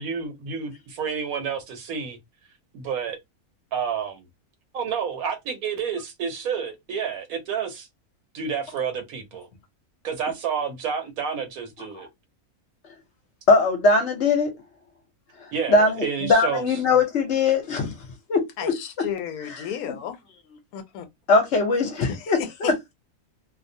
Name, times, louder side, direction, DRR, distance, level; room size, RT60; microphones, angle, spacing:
voice 1, 0.0-2.2 2.7-3.2 3.7-4.3 4.7-7.9 8.3-9.5 10.0-12.1 15.5-16.8, right 6 dB, 75° right, 1.1 m, -29 dB
voice 2, 13.5-14.5 15.7-17.9 18.3-19.1 19.5-19.6 21.3-22.9, left 3 dB, 60° left, 0.9 m, -21 dB
voice 3, 18.6-20.2 20.7-21.1 22.0-22.9, left 9 dB, 80° left, 1.1 m, -33 dB
2.7 x 2.0 x 2.6 m
omnidirectional pair, 1.5 m